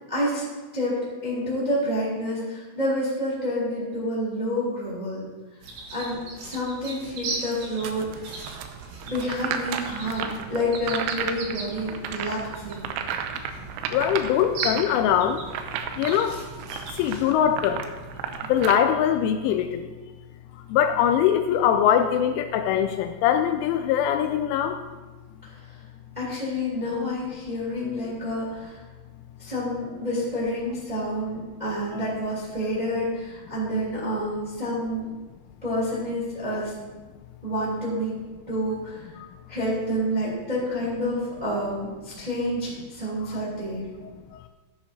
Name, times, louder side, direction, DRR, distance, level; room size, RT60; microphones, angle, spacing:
voice 1, 0.1-0.4 0.7-5.3 5.9-8.3 9.0-12.9 26.2-28.8 29.4-35.1 35.6-36.7 37.4-38.2 38.5-39.1 39.5-43.9, equal, 15° right, -6 dB, 1.8 m, -28 dB
sound 1, 5.6-17.3, right 3 dB, 70° right, 1.9 m, -39 dB
sound 2, 7.8-18.7, right 8 dB, 90° right, 3.3 m, -34 dB
voice 2, 13.9-15.4 16.0-16.5 16.9-17.9 18.5-19.8 20.6-24.8 31.9-32.0 39.2-39.3 43.3-43.4 44.3-44.4, left 9 dB, 85° left, 7 dB, 2.9 m, -22 dB
14.0 x 9.5 x 2.8 m, 1.3 s
omnidirectional pair, 5.7 m